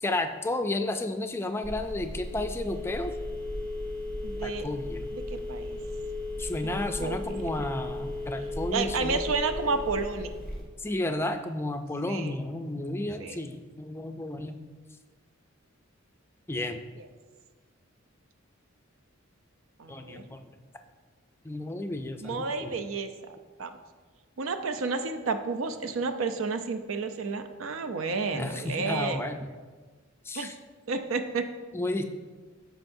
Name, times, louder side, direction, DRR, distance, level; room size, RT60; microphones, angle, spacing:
voice 1, 0.0-3.1 4.4-5.1 6.4-9.2 10.8-14.6 16.5-16.8 19.9-20.5 21.4-22.8 28.3-29.5 30.2-30.6 31.7-32.0, left 2 dB, 10° left, 6 dB, 0.4 m, -32 dB
Telephone, 1.6-10.6, left 2 dB, 50° right, 2.0 m, -35 dB
voice 2, 4.2-4.7 5.1-5.8 6.6-7.5 8.7-10.3 12.1-12.4 13.2-13.4 17.0-17.1 19.8-20.2 22.2-23.8 24.4-29.3 30.4-30.5 30.9-31.4, right 4 dB, 75° right, 8 dB, 0.5 m, -31 dB
13.0 x 4.7 x 2.6 m, 1.4 s
head